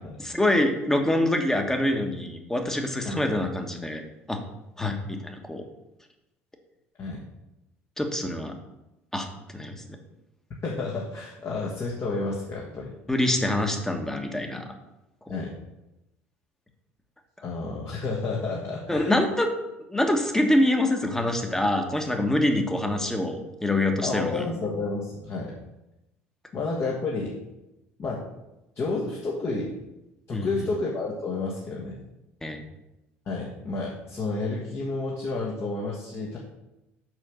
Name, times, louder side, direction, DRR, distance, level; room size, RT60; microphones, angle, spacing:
voice 1, 0.2-4.0 4.3-4.4 4.8-5.6 8.0-8.6 9.1-9.3 9.5-9.8 13.1-14.7 18.9-19.5 19.9-24.4 30.3-30.5 32.4-32.6, left 1 dB, 5° left, 4 dB, 1.4 m, -25 dB
voice 2, 10.6-13.0 15.3-15.5 17.4-19.1 24.0-25.5 26.5-27.4 28.0-28.2 28.7-29.8 30.3-32.0 33.2-36.4, left 3 dB, 35° left, -2 dB, 1.6 m, -30 dB
6.3 x 5.7 x 6.4 m, 0.96 s
figure-of-eight pair, 60°, 7 cm